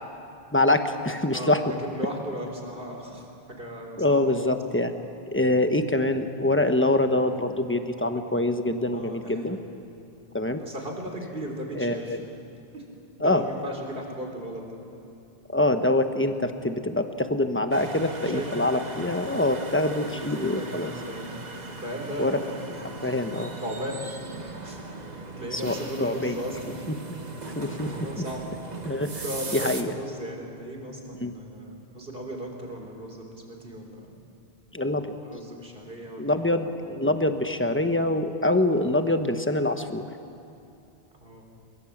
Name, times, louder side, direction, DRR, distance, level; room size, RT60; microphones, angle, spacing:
voice 1, 0.5-1.6 4.0-5.0 5.3-9.6 10.3-10.6 11.7-12.2 13.2-13.4 15.5-20.9 22.2-22.4 22.8-23.5 25.5-26.4 27.6-27.9 28.8-29.2 29.5-29.9 31.2-31.3 34.7-35.2 36.2-40.0, left 2 dB, 10° left, 7 dB, 1.1 m, -25 dB
voice 2, 1.3-4.4 8.9-9.6 10.4-12.2 12.7-12.8 13.2-14.8 18.2-18.5 19.8-24.1 24.6-24.8 25.4-26.8 27.2-27.4 27.7-28.4 29.2-34.2 35.2-36.4 41.2-41.4, equal, 60° right, 1 dB, 3.8 m, -37 dB
sound 1, 17.7-29.8, right 3 dB, 40° right, 1.5 m, -38 dB
23.0 x 22.0 x 7.3 m, 2.7 s
omnidirectional pair, 1.1 m